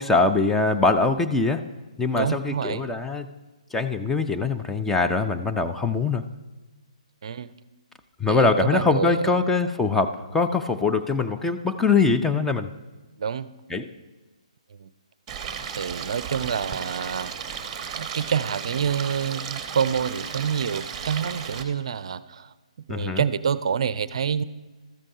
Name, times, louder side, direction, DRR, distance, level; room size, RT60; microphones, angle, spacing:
voice 1, 0.0-1.6 2.0-3.3 3.7-6.2 8.2-12.7 13.7-13.9 22.9-23.2, left 4 dB, 5° left, 5 dB, 0.4 m, -23 dB
voice 2, 2.2-2.8 7.2-7.5 8.3-9.4 13.2-13.5 14.8-14.9 15.7-17.3 18.0-22.5 22.9-24.4, right 7 dB, 55° right, 16 dB, 0.4 m, -27 dB
Stream, 15.3-21.6, right 7 dB, 20° right, 1.0 m, -34 dB
13.0 x 7.5 x 4.8 m, 1.2 s
figure-of-eight pair, 140°, 4 cm